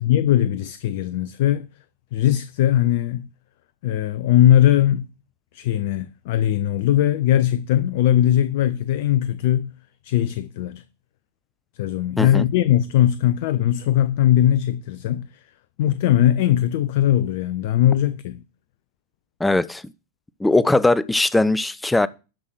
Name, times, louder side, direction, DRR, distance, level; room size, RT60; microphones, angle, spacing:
voice 1, 0.0-1.7 2.1-3.3 3.8-5.1 5.5-9.7 10.0-10.8 11.8-15.4 15.8-18.4, left 12 dB, 50° left, 0.5 m, -19 dB
voice 2, 19.4-19.8 20.4-22.1, left 2 dB, 5° left, 0.5 m, -19 dB
12.0 x 5.5 x 6.3 m
figure-of-eight pair, 90°, 0 cm